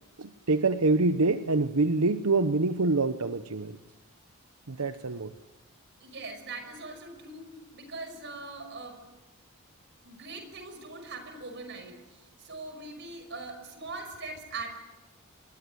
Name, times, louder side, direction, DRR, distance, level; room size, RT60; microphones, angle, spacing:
voice 1, 0.2-3.8 4.7-5.3, right 3 dB, 90° right, 10 dB, 1.0 m, -26 dB
voice 2, 6.0-9.0 10.0-12.0 12.4-14.8, right 3 dB, 55° right, 7 dB, 5.7 m, -41 dB
27.0 x 21.0 x 9.8 m, 1.1 s
head